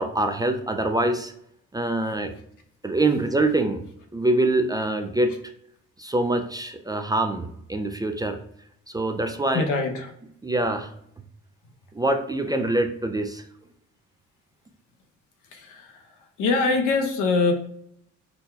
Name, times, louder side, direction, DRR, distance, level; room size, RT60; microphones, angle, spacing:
voice 1, 0.0-1.3 1.7-2.3 2.8-3.8 4.1-5.3 6.0-8.4 8.9-9.6 10.4-10.9 11.9-13.4, right 2 dB, 15° right, 6 dB, 0.3 m, -24 dB
voice 2, 9.5-10.1 15.5-16.1 16.4-17.5, left 4 dB, 85° left, 4 dB, 0.8 m, -23 dB
4.0 x 2.2 x 4.3 m, 0.71 s
cardioid pair, 90°, 30 cm